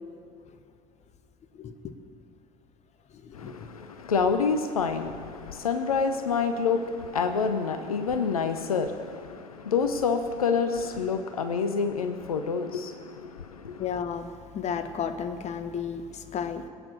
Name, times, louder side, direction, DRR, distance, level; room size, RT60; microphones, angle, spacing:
voice 1, 1.5-1.9 3.2-3.5 10.7-10.8 13.8-16.7, left 7 dB, 40° left, 1.2 m, -33 dB
voice 2, 3.3-13.8, left 5 dB, 80° left, 0.8 m, -28 dB
21.5 x 9.0 x 6.8 m
figure-of-eight pair, 65°, 18 cm